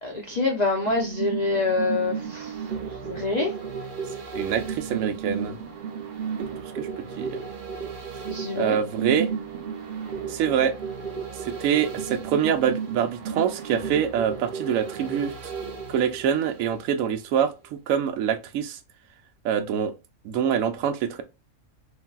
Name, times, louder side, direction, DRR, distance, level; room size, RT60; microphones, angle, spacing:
voice 1, 0.0-2.6 3.0-3.5 8.3-8.8, left 3 dB, 70° left, 0.4 m, -26 dB
sound 1, 0.8-17.1 17.4-17.5, right 6 dB, 60° right, 0.5 m, -33 dB
voice 2, 4.3-5.6 6.7-7.4 8.6-9.3 10.3-10.7 11.6-15.5 15.9-18.8 19.4-19.9 20.2-21.2, right 8 dB, 75° right, 1.0 m, -25 dB
3.2 x 2.7 x 2.2 m
omnidirectional pair, 1.5 m